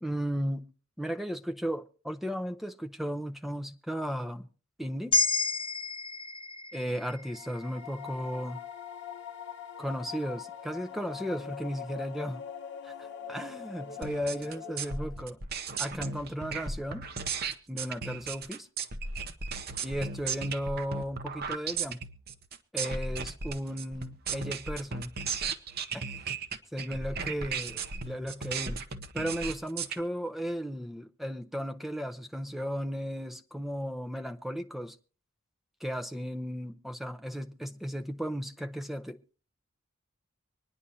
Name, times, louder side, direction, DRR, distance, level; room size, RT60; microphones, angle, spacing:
voice 1, 0.0-0.7 1.0-4.5 4.8-5.2 6.7-8.6 9.8-12.4 12.8-15.4 15.8-17.1 17.7-18.7 19.8-22.0 22.7-25.3 25.9-26.1 26.7-28.8 29.1-35.0 35.8-39.3, equal, ahead, 0.6 m, -35 dB
sound 1, 5.1-9.4, left 3 dB, 25° left, 0.9 m, -32 dB
sound 2, 7.2-15.3, left 7 dB, 60° left, 0.8 m, -43 dB
sound 3, 14.0-30.0, right 5 dB, 50° right, 0.8 m, -36 dB
25.0 x 10.0 x 2.7 m
head